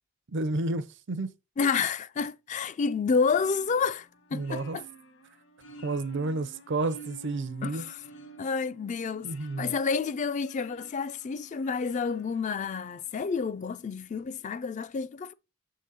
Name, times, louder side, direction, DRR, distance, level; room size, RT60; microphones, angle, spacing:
voice 1, 0.3-1.3 4.3-4.8 5.8-7.8 9.2-9.7, right 2 dB, 55° right, 0.5 m, -31 dB
voice 2, 1.6-4.8 7.6-8.0 8.4-15.3, left 5 dB, 35° left, 0.3 m, -29 dB
sound 1, 3.3-13.1, right 3 dB, 60° left, 1.1 m, -50 dB
6.8 x 3.8 x 4.1 m
head